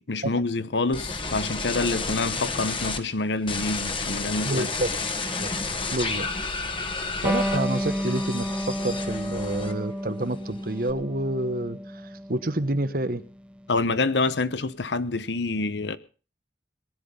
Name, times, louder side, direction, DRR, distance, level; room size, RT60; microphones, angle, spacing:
voice 1, 0.1-4.7 13.7-16.0, left 3 dB, 80° left, 1.0 m, -27 dB
sound 1, 0.9-3.0 3.5-10.0 10.3-10.9, left 3 dB, 30° left, 1.6 m, -31 dB
voice 2, 4.4-4.9 5.4-5.5 5.9-6.3 7.2-13.2, right 1 dB, 55° right, 1.2 m, -28 dB
Electric guitar, 7.2-14.4, equal, 5° right, 0.9 m, -32 dB
19.0 x 11.0 x 5.4 m
head